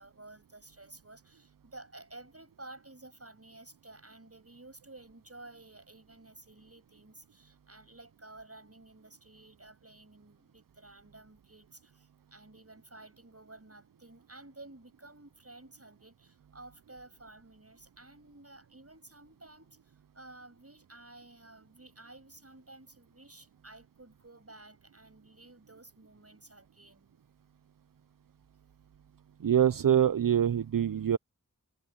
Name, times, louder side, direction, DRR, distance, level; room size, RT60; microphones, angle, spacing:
voice 1, 0.0-19.8 20.1-27.1, right 2 dB, 45° right, 6.8 m, -53 dB
voice 2, 29.4-31.2, right 9 dB, 75° right, 0.5 m, -25 dB
wide cardioid pair, 50°, 33 cm